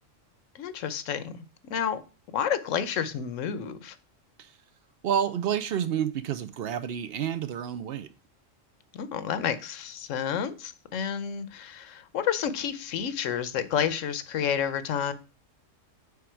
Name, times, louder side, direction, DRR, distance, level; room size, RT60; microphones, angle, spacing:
voice 1, 0.5-2.0 2.3-4.0 8.9-15.1, left 8 dB, 75° left, 1.1 m, -30 dB
voice 2, 5.0-8.1, right 9 dB, 65° right, 0.7 m, -29 dB
8.4 x 3.6 x 4.5 m
omnidirectional pair, 1.3 m